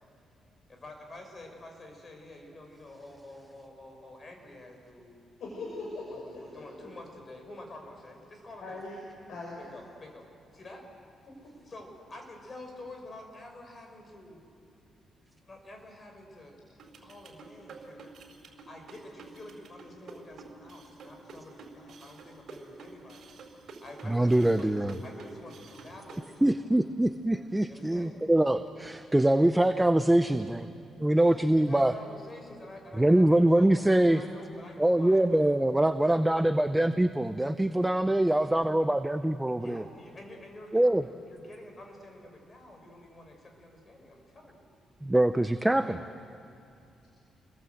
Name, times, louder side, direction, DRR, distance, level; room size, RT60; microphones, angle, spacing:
voice 1, 0.7-5.2 6.1-8.8 9.6-10.9 11.6-14.4 15.5-16.5 17.0-18.1 18.7-23.3 23.8-26.5 27.7-28.2 31.1-35.5 36.3-36.5 39.6-44.7 45.8-46.0, left 1 dB, 30° left, 3 dB, 5.5 m, -48 dB
voice 2, 5.4-6.9 8.6-9.0 9.3-9.6 11.4-11.5, left 2 dB, 70° left, -3 dB, 5.8 m, -40 dB
sound 1, 16.8-26.3, right 4 dB, 60° right, 4.4 m, -48 dB
voice 3, 24.1-25.0 26.4-31.9 33.0-34.2 34.8-39.8 40.7-41.0 45.0-46.0, right 1 dB, 10° right, 9 dB, 0.7 m, -24 dB
28.5 x 21.5 x 7.9 m, 2.6 s
cardioid pair, 110°, 0 cm